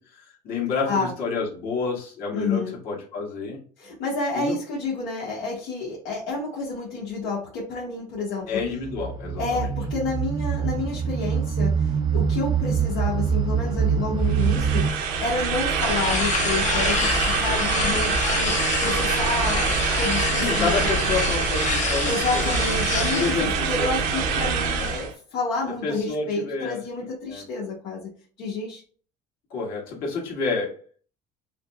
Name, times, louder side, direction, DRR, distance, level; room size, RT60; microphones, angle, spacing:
voice 1, 0.0-3.6 4.3-4.6 8.5-9.7 20.3-22.7 23.1-23.8 24.8-24.9 25.8-27.4 29.5-30.7, left 4 dB, 60° left, -2 dB, 1.7 m, -29 dB
voice 2, 2.3-2.8 3.8-8.6 9.4-21.1 22.0-28.1 28.4-28.8, left 3 dB, 75° left, -4 dB, 1.2 m, -29 dB
sound 1, 8.7-14.9, right 7 dB, 25° right, 0.4 m, -24 dB
sound 2, 14.2-25.1, right 5 dB, 80° right, 0.8 m, -25 dB
sound 3, 15.8-23.4, left 5 dB, 45° left, 0.8 m, -27 dB
5.4 x 2.1 x 2.3 m, 0.42 s
cardioid pair, 115°, 18 cm